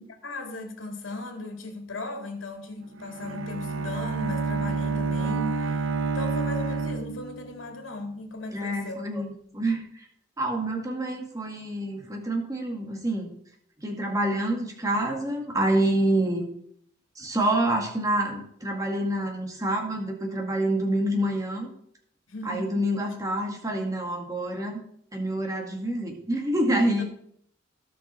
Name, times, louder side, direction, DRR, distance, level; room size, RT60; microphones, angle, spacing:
voice 1, 0.0-5.8 6.1-9.0 22.3-22.7 27.0-27.1, left 2 dB, 80° left, 2.3 m, -37 dB
Bowed string instrument, 3.0-7.7, right 4 dB, 85° right, 0.8 m, -29 dB
voice 2, 8.5-10.1 10.4-13.3 13.8-16.5 17.2-21.7 22.4-24.8 25.1-27.0, right 1 dB, 15° right, 2.0 m, -27 dB
18.0 x 6.0 x 4.3 m
head